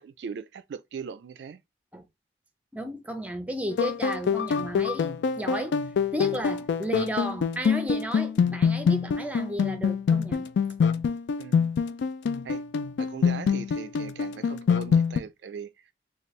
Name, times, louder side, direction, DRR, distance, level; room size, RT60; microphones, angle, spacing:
voice 1, 0.0-1.6 11.4-11.8 12.4-12.6 13.0-15.7, right 6 dB, 75° right, 0.3 m, -39 dB
voice 2, 2.7-5.8 6.1-10.5, right 1 dB, 10° right, 0.5 m, -33 dB
sound 1, 3.7-15.2, left 6 dB, 75° left, 0.3 m, -25 dB
4.2 x 2.3 x 3.1 m
head